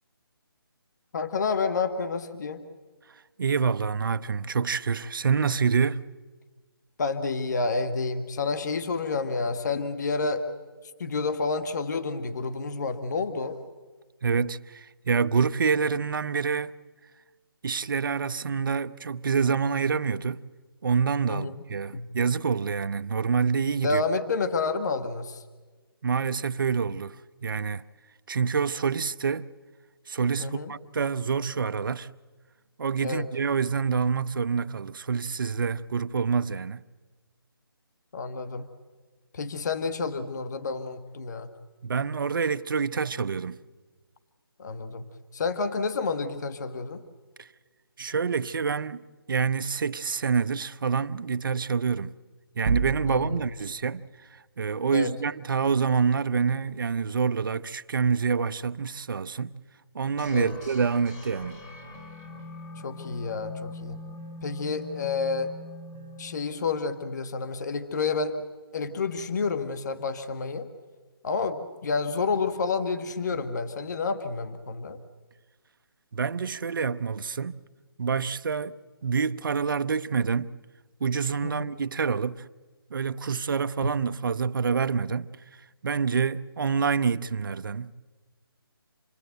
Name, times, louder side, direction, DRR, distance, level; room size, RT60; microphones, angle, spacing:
voice 1, 1.1-2.6 7.0-10.4 11.0-13.6 21.3-21.5 21.9-22.1 23.8-25.4 30.4-30.7 33.0-33.3 38.1-38.7 39.3-41.5 44.6-45.0 45.3-47.0 53.1-53.4 54.9-55.1 60.3-60.5 62.8-64.0 64.4-65.5 66.2-68.4 68.7-70.7 71.2-75.0 81.4-81.7, left 4 dB, 45° left, 1.4 m, -29 dB
voice 2, 3.4-6.0 14.2-16.7 17.6-20.5 20.8-24.0 26.0-27.8 28.3-29.5 30.1-32.1 32.8-36.8 41.8-43.6 47.4-47.5 48.0-52.1 52.5-54.0 54.3-59.6 59.9-61.6 65.9-66.1 76.1-77.6 78.0-80.6 81.0-82.5 82.9-88.0, right 5 dB, 60° right, 0.7 m, -27 dB
sound 1, 52.7-53.6, right 4 dB, 30° right, 1.2 m, -28 dB
sound 2, 60.2-67.1, left 3 dB, 15° left, 4.4 m, -43 dB
28.0 x 19.5 x 8.0 m
hypercardioid pair, 165°, 13 cm